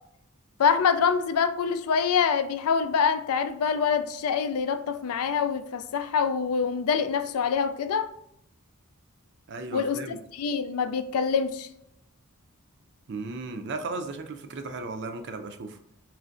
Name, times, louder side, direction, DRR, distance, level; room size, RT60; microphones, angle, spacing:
voice 1, 0.6-8.1 9.7-11.7, left 6 dB, 75° left, 0.4 m, -25 dB
voice 2, 9.5-10.2 13.1-15.8, right 3 dB, 50° right, 0.4 m, -35 dB
4.5 x 3.1 x 2.5 m
head